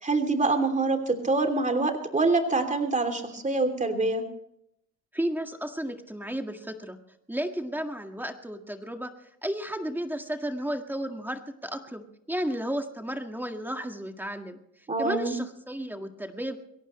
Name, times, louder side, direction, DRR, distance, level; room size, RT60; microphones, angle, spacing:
voice 1, 0.0-4.2 14.9-15.4, right 3 dB, 25° right, 6 dB, 3.0 m, -25 dB
voice 2, 5.1-7.0 7.3-9.1 9.4-14.6 15.0-16.6, equal, 5° right, 5 dB, 1.8 m, -33 dB
22.5 x 17.0 x 3.2 m, 0.76 s
cardioid pair, 90°, 30 cm